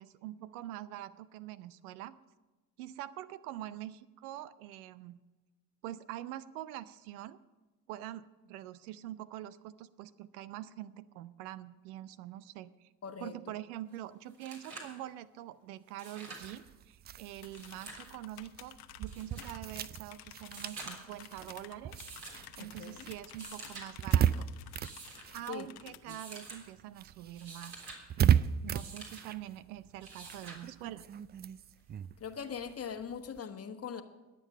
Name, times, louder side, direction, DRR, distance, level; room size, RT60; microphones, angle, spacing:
voice 1, 0.0-2.2 2.8-5.2 5.8-7.4 7.9-12.9 13.2-22.0 22.6-24.5 25.3-27.7 28.2-31.1, right 13 dB, 70° right, 16 dB, 0.6 m, -45 dB
voice 2, 13.0-13.3 22.6-23.0 25.5-25.7 26.1-26.2 32.2-34.0, left 7 dB, 30° left, 8 dB, 1.2 m, -41 dB
sound 1, 13.9-14.0 14.3-15.0 15.9-16.6 17.4-18.1 19.1-19.6 20.4-21.2 22.0-22.5 23.2-23.9 24.7-25.3 26.1-26.6 27.2-28.0 28.7-29.2 30.0-30.6 32.0-32.1, right 3 dB, 55° right, 3.7 m, -48 dB
sound 2, 16.3-26.2 26.5-33.4, right 9 dB, 25° right, 0.3 m, -35 dB
sound 3, 17.4-26.0, left 14 dB, 55° left, 0.9 m, -53 dB
21.0 x 7.6 x 5.5 m, 1.2 s
hypercardioid pair, 55°, 45 cm